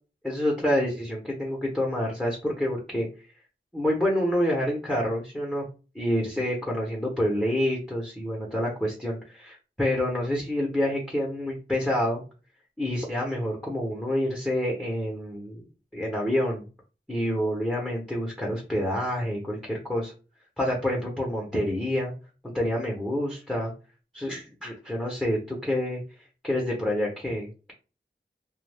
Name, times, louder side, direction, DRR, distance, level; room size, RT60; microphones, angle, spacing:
voice 1, 0.2-3.1 3.7-5.7 5.9-12.2 12.8-15.6 15.9-16.6 17.1-20.1 20.6-22.1 22.4-23.7 24.1-26.0 26.4-27.7, left 1 dB, 5° left, -2 dB, 0.8 m, -28 dB
2.2 x 2.2 x 3.3 m, 0.34 s
wide cardioid pair, 45°, 20 cm